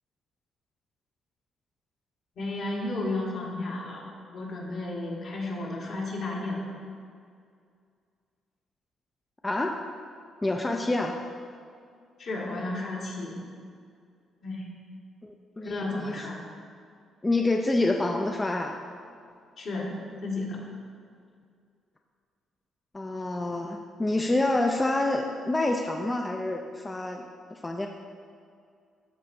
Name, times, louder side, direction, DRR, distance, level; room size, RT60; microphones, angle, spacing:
voice 1, 2.4-4.0 4.3-6.6 12.2-13.3 14.4-14.6 15.6-16.4 19.6-19.9 20.2-20.6, left 2 dB, 65° left, -4 dB, 1.7 m, -33 dB
voice 2, 10.4-11.2 15.2-16.3 17.2-18.8 22.9-27.9, left 2 dB, 20° left, 2 dB, 0.4 m, -27 dB
12.0 x 4.2 x 2.7 m, 2.2 s
cardioid pair, 90°, 0 cm